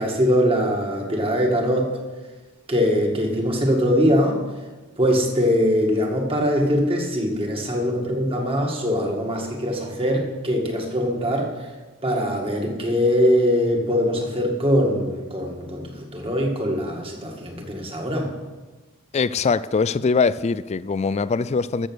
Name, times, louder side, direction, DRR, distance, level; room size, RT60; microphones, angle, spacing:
voice 1, 0.0-2.0 2.7-4.4 5.0-11.5 12.0-18.3, equal, 25° right, 1.9 m, -22 dB
voice 2, 19.1-21.9, left 4 dB, 30° left, 0.3 m, -22 dB
14.5 x 7.0 x 6.3 m
head